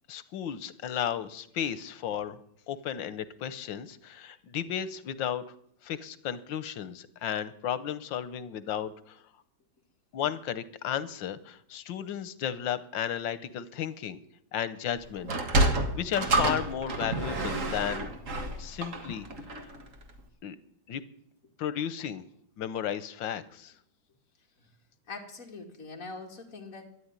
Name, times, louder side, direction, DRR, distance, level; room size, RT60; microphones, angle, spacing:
voice 1, 0.1-5.4 5.8-9.2 10.1-14.2 14.5-15.3 15.6-18.1 18.6-19.3 20.4-20.6 20.9-21.0 21.6-22.2 22.6-23.7, left 9 dB, 90° left, 15 dB, 1.6 m, -34 dB
Sliding door, 15.2-19.8, right 2 dB, 45° right, 1.9 m, -29 dB
voice 2, 25.1-26.9, left 3 dB, 45° left, 2 dB, 2.7 m, -43 dB
13.0 x 11.0 x 9.7 m, 0.70 s
omnidirectional pair, 2.0 m